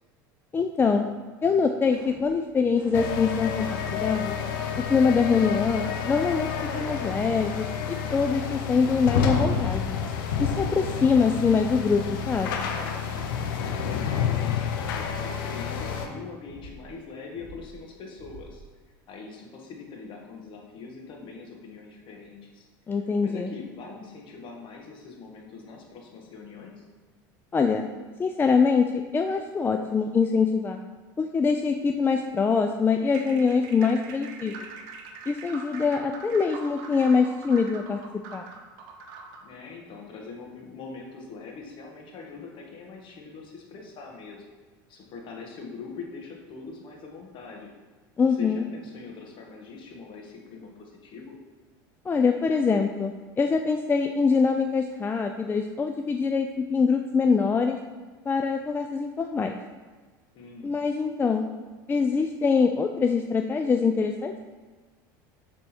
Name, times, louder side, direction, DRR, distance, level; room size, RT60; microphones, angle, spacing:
voice 1, 0.5-1.0 1.4-4.4 4.8-6.5 6.7-10.0 10.4-12.7 22.9-23.6 27.5-27.9 28.2-30.8 31.2-34.6 35.3-38.0 38.3-38.4 48.2-48.7 52.1-57.8 58.3-59.5 60.6-61.5 61.9-64.4, left 5 dB, 20° left, 4 dB, 0.3 m, -24 dB
sound 1, 1.9-2.3 2.8-3.2 3.6-4.0 4.5-4.9 5.3-5.8 6.2-6.6 7.0-7.5 7.9-8.3 8.8-9.2 9.6-10.0 10.5-10.9 11.3-11.8 12.2-12.6 13.0-13.5 13.9-14.3 14.8-15.2 15.6-16.1 16.5-16.9 17.3-17.8 18.2-18.7, right 2 dB, 45° right, 1.8 m, -46 dB
sound 2, 2.9-16.1, left 7 dB, 80° left, 0.7 m, -29 dB
voice 2, 13.5-18.6 19.1-22.7 23.2-26.8 39.4-44.4 44.9-47.7 48.2-51.3 60.3-60.7, left 4 dB, 50° left, 0 dB, 1.4 m, -42 dB
sound 3, 33.0-39.5, right 4 dB, 70° right, 0.8 m, -43 dB
6.8 x 3.6 x 4.3 m, 1.4 s
supercardioid pair, 100°, 11 cm